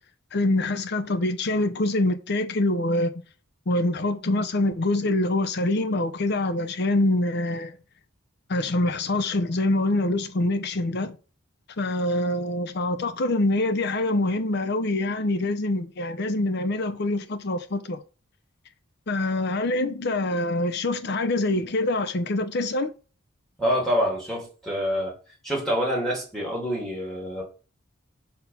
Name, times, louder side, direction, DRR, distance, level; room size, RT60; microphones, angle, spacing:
voice 1, 0.3-3.1 3.7-7.8 8.5-11.2 11.8-18.0 19.1-22.9, left 2 dB, 50° left, 0.6 m, -25 dB
voice 2, 23.6-25.1 25.4-27.4, equal, ahead, 2.8 m, -26 dB
5.7 x 4.3 x 5.4 m
head